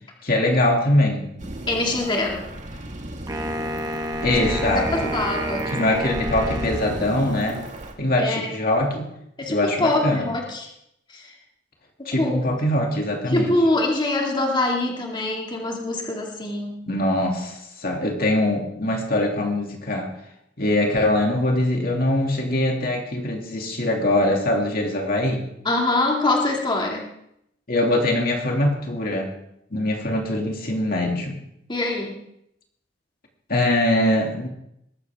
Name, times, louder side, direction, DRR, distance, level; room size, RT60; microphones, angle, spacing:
voice 1, 0.2-1.3 4.2-5.1 5.7-7.6 8.0-9.1 9.5-10.3 12.1-13.5 16.9-20.1 20.6-25.4 27.7-29.3 29.7-31.4 33.5-34.5, left 1 dB, 55° left, 1 dB, 2.5 m, -22 dB
sound 1, 1.4-7.9, right 1 dB, 40° right, 2.0 m, -34 dB
voice 2, 1.7-2.5 4.3-4.6 4.9-5.8 8.2-8.6 9.4-10.7 11.1-11.3 12.2-12.4 13.3-16.8 25.6-27.0 31.7-32.2, left 2 dB, 25° left, -1 dB, 2.4 m, -24 dB
Wind instrument woodwind instrument, 3.3-7.5, right 1 dB, 20° right, 1.3 m, -30 dB
21.0 x 13.5 x 3.6 m, 0.77 s
head